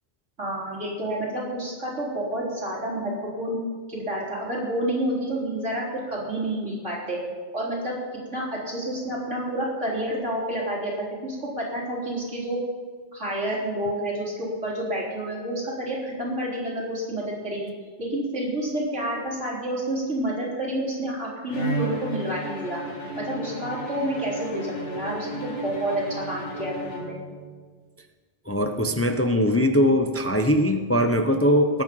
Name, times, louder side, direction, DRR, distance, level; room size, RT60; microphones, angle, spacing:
voice 1, 0.4-3.1 3.4-3.6 3.9-7.2 7.5-8.0 8.3-12.6 13.1-17.7 18.0-22.8 23.2-27.2, right 1 dB, 90° right, -5 dB, 4.2 m, -29 dB
Bowed string instrument, 21.5-27.5, right 1 dB, 80° left, 2.3 m, -33 dB
voice 2, 28.5-31.8, equal, 15° left, 6 dB, 0.6 m, -21 dB
20.0 x 8.6 x 5.3 m, 1.5 s
omnidirectional pair, 1.2 m